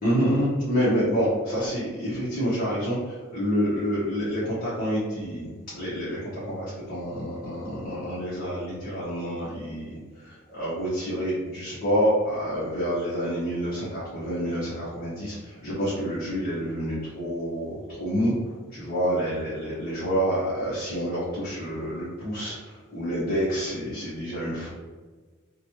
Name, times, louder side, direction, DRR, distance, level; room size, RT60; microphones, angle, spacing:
voice 1, 0.0-5.5 5.7-24.7, equal, 40° left, -9 dB, 0.8 m, -28 dB
2.9 x 2.2 x 2.9 m, 1.4 s
head